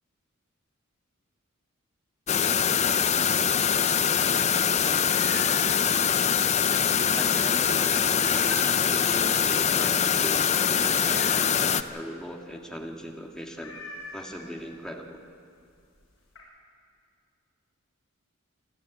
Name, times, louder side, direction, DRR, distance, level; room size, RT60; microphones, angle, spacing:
sound 1, 2.3-11.8, left 7 dB, 30° left, 0.5 m, -23 dB
sound 2, 5.1-9.0 9.4-9.7 10.0-10.1 10.5-11.8 12.2-12.3 12.6-12.8 13.1-13.2 13.6-14.8 15.6-15.7 16.0-16.4, left 2 dB, 65° left, 7.6 m, -41 dB
voice 1, 7.1-13.8 14.1-15.2, equal, 5° left, 0 dB, 1.8 m, -39 dB
28.0 x 12.0 x 9.3 m, 2.3 s
head